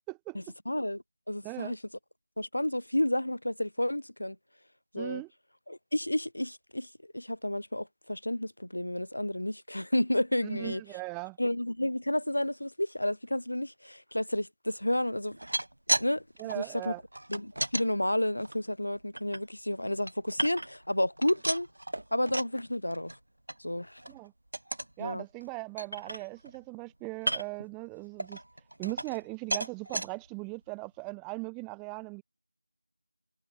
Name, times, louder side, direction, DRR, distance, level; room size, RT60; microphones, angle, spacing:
voice 1, 0.3-1.8 2.4-4.4 4.9-5.2 5.7-6.9 7.1-10.8 11.4-15.4 16.0-16.2 16.5-16.9 17.3-21.7 22.1-23.2 23.6-24.0 25.0-25.2, left 1 dB, 65° left, 0.8 m, -31 dB
voice 2, 1.4-1.8 5.0-5.3 10.4-11.4 16.4-17.0 24.1-24.3 25.0-28.4 28.8-32.2, right 31 dB, 5° right, 0.5 m, -39 dB
sound 1, 15.2-16.1 16.4-17.9 18.4-19.4 19.8-20.9 21.2-22.6 22.9-23.2 23.5-23.6 24.0-24.2 24.5-24.9 25.4-25.5 25.8-26.6 27.2-27.7 28.2-29.3 29.5-30.1 30.7-30.8 31.1-31.2, right 1 dB, 60° right, 0.6 m, -34 dB
figure-of-eight pair, 170°, 0 cm